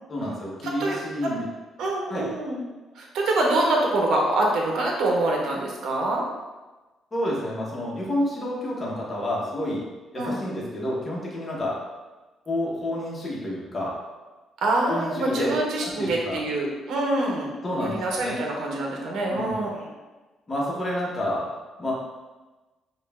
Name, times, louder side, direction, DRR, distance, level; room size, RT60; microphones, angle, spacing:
voice 1, 0.1-1.5 2.1-2.3 7.1-9.9 10.1-11.8 12.5-14.0 14.9-15.5 15.8-16.4 17.6-18.4 19.3-19.6 20.5-21.5 21.8-21.9, left 1 dB, 30° left, -5 dB, 1.0 m, -29 dB
voice 2, 0.6-1.0 1.8-2.6 2.9-6.3 10.2-10.4 14.6-17.5 17.8-19.9, right 2 dB, 75° right, -1 dB, 0.8 m, -25 dB
5.1 x 2.4 x 2.3 m, 1.2 s
cardioid pair, 90°, 0 cm